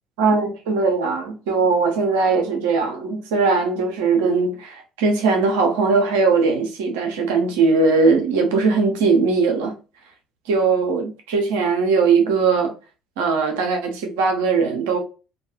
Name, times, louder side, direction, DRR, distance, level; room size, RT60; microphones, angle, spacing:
voice 1, 0.2-9.7 10.5-12.7 13.2-15.0, right 4 dB, 75° right, 0.6 m, -19 dB
2.3 x 2.2 x 2.8 m
hypercardioid pair, 55°, 0 cm